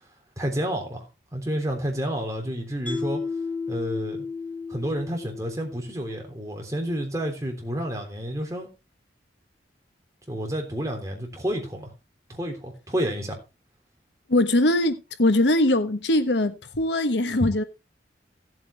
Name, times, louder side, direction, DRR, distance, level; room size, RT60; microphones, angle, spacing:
voice 1, 0.4-1.0 1.3-3.2 3.7-4.2 4.7-8.7 10.3-11.9 12.3-13.4, equal, 20° right, 3.5 m, -30 dB
Mallet percussion, 2.9-6.1, left 4 dB, 5° left, 2.7 m, -33 dB
voice 2, 14.3-17.6, left 1 dB, 80° left, 1.2 m, -21 dB
17.0 x 7.7 x 3.3 m
head